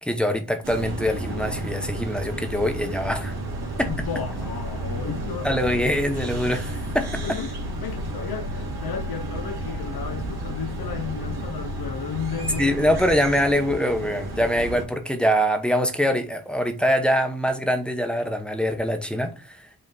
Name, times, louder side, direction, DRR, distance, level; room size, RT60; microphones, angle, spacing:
voice 1, 0.0-3.3 3.8-3.9 5.4-7.2 12.6-19.7, equal, 5° left, 0.9 m, -24 dB
sound 1, 0.6-14.8, right 1 dB, 90° right, 2.5 m, -32 dB
voice 2, 3.8-5.7 7.2-7.5 7.8-13.0 13.5-13.6, left 7 dB, 70° left, 0.7 m, -33 dB
5.5 x 3.6 x 5.3 m
wide cardioid pair, 125°, 37 cm